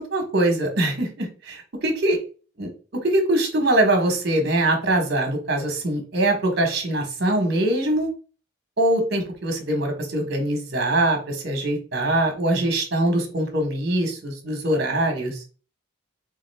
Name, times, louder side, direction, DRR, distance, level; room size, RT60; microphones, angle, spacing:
voice 1, 0.1-2.2 2.6-2.7 3.0-8.1 8.8-15.4, right 1 dB, 50° right, 3 dB, 1.3 m, -23 dB
3.8 x 3.5 x 3.4 m, 0.36 s
head